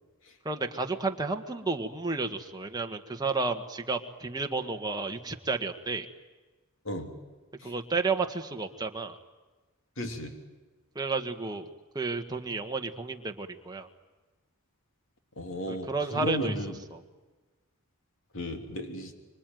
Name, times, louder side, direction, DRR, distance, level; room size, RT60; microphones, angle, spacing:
voice 1, 0.4-6.1 7.6-9.2 10.9-11.7 11.9-13.9 15.7-16.5 16.9-17.0, right 3 dB, 20° right, 3 dB, 1.6 m, -32 dB
voice 2, 10.0-10.3 15.4-16.8 18.3-19.1, equal, 60° left, 5 dB, 3.2 m, -34 dB
26.0 x 24.5 x 9.3 m, 1.2 s
head